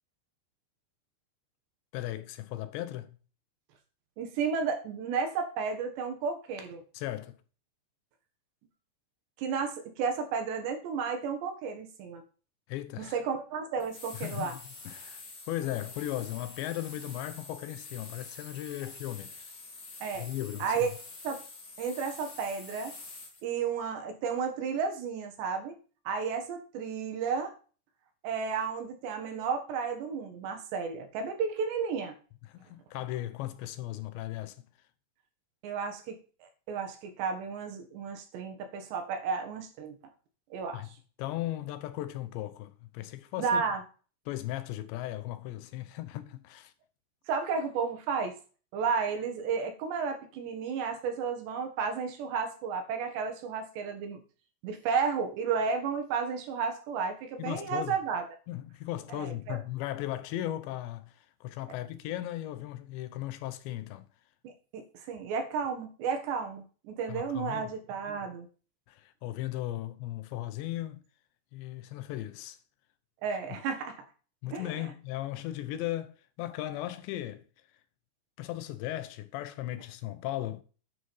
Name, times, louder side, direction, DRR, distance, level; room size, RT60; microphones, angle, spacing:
voice 1, 1.9-3.2 6.9-7.4 12.7-13.2 14.1-19.6 20.2-20.9 32.4-34.7 40.7-40.9 41.2-43.6 44.3-46.7 57.4-58.0 58.5-64.1 67.1-67.6 68.9-71.0 71.5-72.6 73.4-73.6 74.4-77.4 78.4-80.6, left 14 dB, 90° left, 3.2 m, -37 dB
voice 2, 4.2-6.8 9.4-12.2 13.0-14.5 20.0-20.3 20.6-20.9 21.2-21.4 21.8-22.9 23.4-25.7 26.1-27.5 28.2-32.1 35.6-36.2 36.7-40.0 40.5-40.8 43.4-43.8 47.3-48.3 48.7-54.2 54.6-58.2 59.1-59.6 64.4-68.5 73.2-74.1 74.5-74.7, right 5 dB, 80° right, 3.9 m, -32 dB
sound 1, 13.8-23.4, left 3 dB, 30° left, 2.4 m, -47 dB
9.6 x 6.6 x 5.4 m
omnidirectional pair, 4.9 m